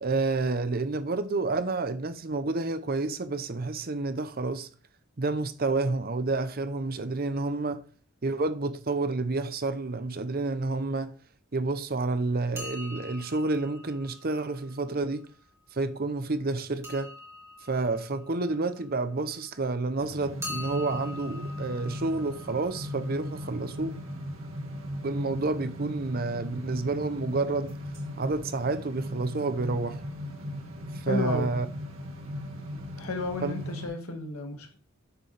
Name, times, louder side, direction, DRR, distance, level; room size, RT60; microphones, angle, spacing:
voice 1, 0.0-4.7 5.2-7.8 8.2-11.1 11.5-15.3 15.7-17.1 17.6-24.0 25.0-27.7 28.2-30.0 30.9-31.7 33.4-33.5, right 3 dB, 45° right, 0.7 m, -29 dB
sound 1, 12.5-15.3 16.8-19.5 20.4-24.2 27.7-28.0 28.3-28.4 29.1-29.2 29.5-29.6, left 2 dB, 10° right, 2.0 m, -44 dB
sound 2, 20.0-33.9, equal, 70° right, 1.7 m, -38 dB
voice 2, 31.1-31.6 33.0-34.8, left 2 dB, 85° left, 1.7 m, -32 dB
8.7 x 6.7 x 3.4 m
head